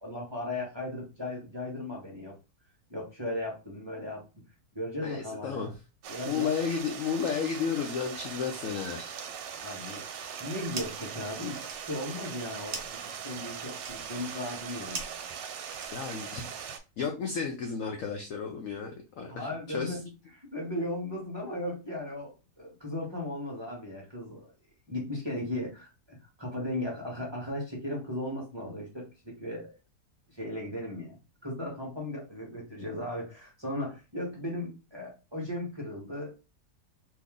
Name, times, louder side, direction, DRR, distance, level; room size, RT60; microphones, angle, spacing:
voice 1, 0.0-2.3 2.9-4.2 4.7-5.7 6.1-6.4 9.6-10.0 10.4-15.0 19.2-20.0 20.3-24.5 24.9-29.7 30.3-31.2 31.4-36.3, left 1 dB, 20° right, 0.8 m, -36 dB
voice 2, 5.0-5.7 6.3-9.2 15.9-16.5 17.0-20.0, left 6 dB, 70° left, 0.7 m, -33 dB
Stream, 6.0-16.8, right 7 dB, 90° right, 1.3 m, -40 dB
sound 1, 10.7-11.1 11.4-16.3, right 4 dB, 60° right, 1.1 m, -43 dB
2.9 x 2.7 x 3.6 m
omnidirectional pair, 1.9 m